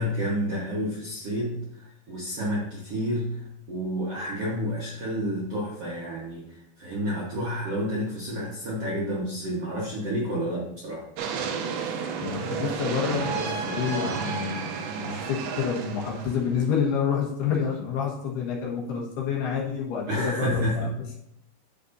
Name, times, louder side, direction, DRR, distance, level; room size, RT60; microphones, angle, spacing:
voice 1, 0.0-3.4 3.7-11.0 20.1-20.9, equal, 60° right, -6 dB, 1.6 m, -30 dB
sound 1, 11.2-16.6, right 5 dB, 80° right, 2.4 m, -31 dB
voice 2, 12.2-20.9, left 6 dB, 75° left, -3 dB, 3.4 m, -28 dB
10.5 x 6.9 x 2.7 m, 0.77 s
omnidirectional pair, 4.9 m